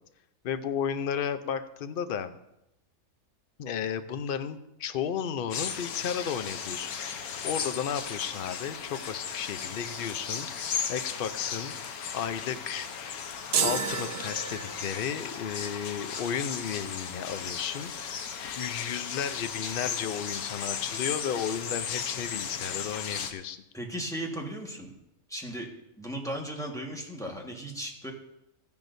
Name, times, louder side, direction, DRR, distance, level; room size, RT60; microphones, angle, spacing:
voice 1, 0.4-2.3 3.6-11.7 12.1-12.9 13.6-18.2 18.5-23.6, left 8 dB, 55° left, 10 dB, 0.6 m, -33 dB
sound 1, 5.5-23.3, left 7 dB, 90° left, 1.3 m, -36 dB
sound 2, 13.5-15.1, right 7 dB, 55° right, 0.8 m, -30 dB
voice 2, 23.7-24.9 25.3-25.7 26.0-28.1, right 1 dB, ahead, -1 dB, 1.4 m, -36 dB
14.0 x 10.5 x 2.7 m, 0.84 s
omnidirectional pair, 1.5 m